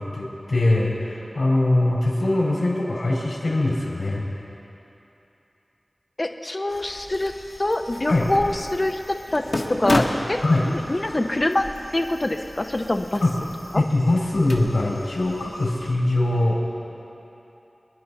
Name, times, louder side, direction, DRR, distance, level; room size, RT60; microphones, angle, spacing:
voice 1, 0.0-4.3 8.1-8.3 10.4-10.7 13.2-13.3 13.7-16.6, left 2 dB, 85° left, -4 dB, 4.2 m, -22 dB
voice 2, 6.2-7.3 7.6-10.4 10.9-11.7 11.9-13.2 13.7-13.8, left 1 dB, 35° left, 5 dB, 0.9 m, -24 dB
sound 1, 6.7-15.9, left 1 dB, 60° left, 1.5 m, -33 dB
26.5 x 10.5 x 4.2 m, 2.9 s
wide cardioid pair, 70°, 0 cm